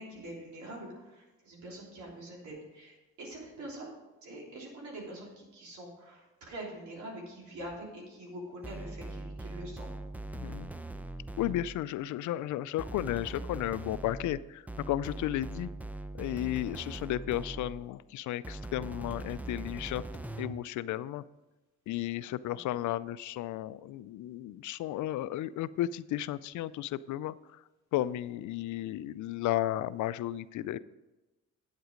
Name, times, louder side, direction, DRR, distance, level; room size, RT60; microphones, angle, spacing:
voice 1, 0.0-9.9 22.5-22.8, right 1 dB, 75° right, -2 dB, 3.4 m, -45 dB
sound 1, 8.6-11.9 12.8-17.9 18.4-20.7, right 2 dB, 5° right, 0.5 m, -41 dB
voice 2, 10.3-10.7 11.4-15.7 16.1-20.0 20.4-21.2 21.9-27.3 27.9-30.8, left 13 dB, 75° left, 17 dB, 0.5 m, -34 dB
9.1 x 8.0 x 5.1 m, 1.1 s
cardioid pair, 90°, 30 cm